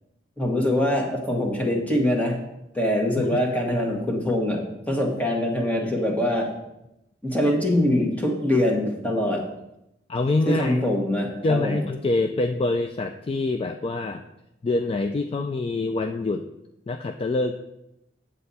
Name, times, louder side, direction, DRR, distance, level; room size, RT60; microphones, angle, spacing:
voice 1, 0.4-2.4 2.7-6.5 7.2-9.5 10.5-11.8, left 1 dB, 10° left, 0 dB, 1.4 m, -23 dB
voice 2, 10.1-10.8 11.4-14.2 14.6-16.4 16.9-17.5, left 2 dB, 30° left, 7 dB, 0.3 m, -25 dB
7.9 x 7.6 x 4.1 m, 0.88 s
head